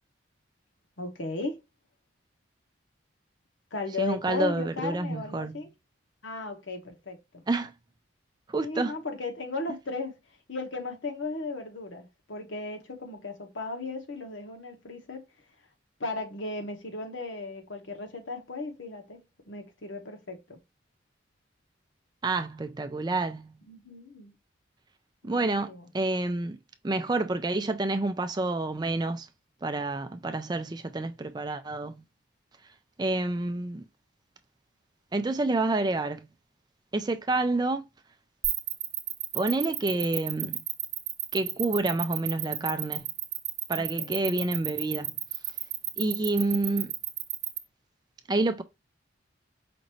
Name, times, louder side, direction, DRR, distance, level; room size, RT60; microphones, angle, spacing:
voice 1, 1.0-1.6 3.7-5.7 6.2-7.4 8.6-10.2 10.5-15.2 16.0-20.6 23.7-24.3 25.2-25.9 43.7-44.2, left 3 dB, 70° left, 1.2 m, -36 dB
voice 2, 4.0-5.6 7.5-7.7 8.5-8.9 22.2-23.6 25.2-26.6 26.8-29.3 29.6-32.0 33.0-33.9 35.1-36.3 36.9-37.8 39.3-40.6 41.3-43.1 43.7-45.2 46.0-46.9 48.3-48.6, right 2 dB, 20° right, 0.4 m, -28 dB
sound 1, 38.4-47.6, right 13 dB, 55° right, 0.8 m, -31 dB
5.1 x 2.6 x 3.0 m
head